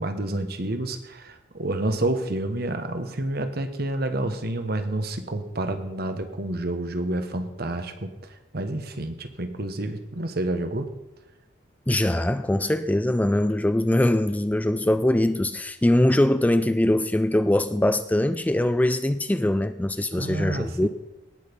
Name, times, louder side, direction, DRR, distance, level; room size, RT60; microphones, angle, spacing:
voice 1, 0.0-8.1 8.5-10.9 20.1-20.9, right 1 dB, 55° right, 1.3 m, -29 dB
voice 2, 11.9-20.9, left 1 dB, 10° left, 0.4 m, -22 dB
18.0 x 6.6 x 5.3 m
head